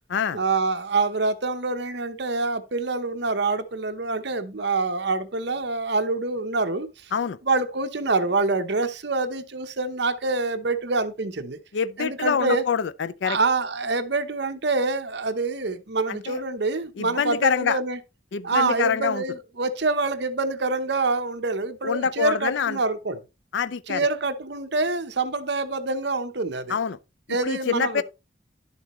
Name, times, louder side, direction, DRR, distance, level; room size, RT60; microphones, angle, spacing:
voice 1, 0.3-7.1 7.4-11.6 12.0-12.6 13.2-18.0 18.4-23.2 23.9-26.8 27.3-28.0, right 3 dB, 60° right, 0.9 m, -26 dB
voice 2, 11.7-13.4 16.1-16.4 17.0-17.8 18.3-19.2 21.8-22.8 23.5-24.1 26.7-27.0 27.4-28.0, left 6 dB, 65° left, 0.4 m, -25 dB
11.0 x 7.1 x 3.1 m
head